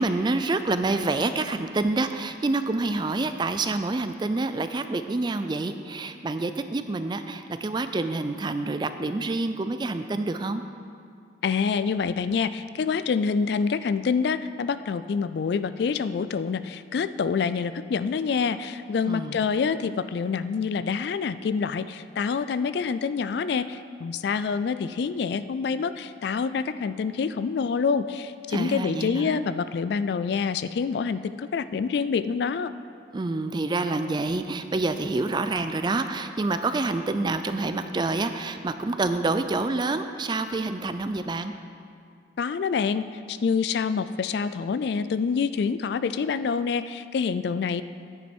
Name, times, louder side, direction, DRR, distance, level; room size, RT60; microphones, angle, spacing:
voice 1, 0.0-10.6 19.0-19.4 28.5-29.4 33.1-41.5, right 3 dB, 25° right, 10 dB, 0.3 m, -27 dB
voice 2, 11.4-32.7 42.4-47.8, left 5 dB, 60° left, 14 dB, 0.3 m, -27 dB
9.9 x 9.4 x 4.4 m, 2.3 s
head